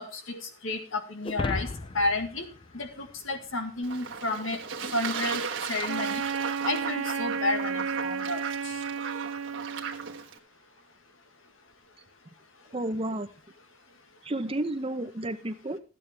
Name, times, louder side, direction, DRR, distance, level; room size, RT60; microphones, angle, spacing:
voice 1, 0.0-1.7 1.9-2.5 2.7-4.6 4.9-6.2 6.6-8.7, left 2 dB, 80° left, 7 dB, 1.8 m, -31 dB
sound 1, 1.2-3.8, left 2 dB, 25° left, 0.4 m, -35 dB
Fowl / Bird / Water, 3.8-10.4, right 6 dB, 65° right, 1.5 m, -36 dB
Wind instrument woodwind instrument, 5.9-10.2, right 6 dB, 80° right, 0.5 m, -32 dB
voice 2, 12.7-13.3 14.2-15.8, right 1 dB, 30° right, 11 dB, 0.8 m, -31 dB
14.0 x 8.9 x 3.4 m, 0.34 s
head